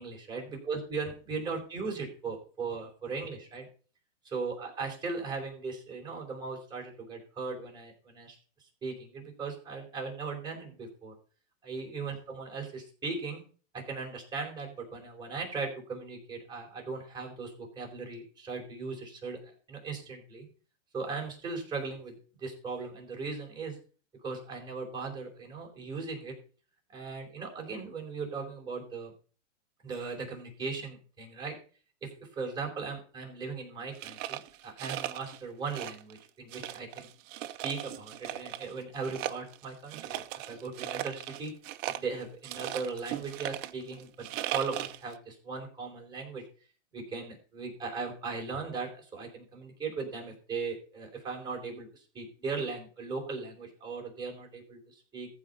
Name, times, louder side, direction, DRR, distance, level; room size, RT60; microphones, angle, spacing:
voice 1, 0.0-3.7 4.2-8.4 8.8-11.1 11.6-13.4 13.7-20.4 20.9-22.1 22.4-23.8 24.2-26.3 26.9-29.1 29.8-31.6 32.0-37.1 37.6-41.5 41.9-46.4 46.9-55.3, right 4 dB, 10° right, -1 dB, 4.4 m, -38 dB
sound 1, 33.9-35.4 35.7-36.2 36.5-38.7 39.0-45.1, right 13 dB, 25° right, 0.6 m, -38 dB
14.5 x 5.0 x 6.8 m, 0.39 s
hypercardioid pair, 145°, 39 cm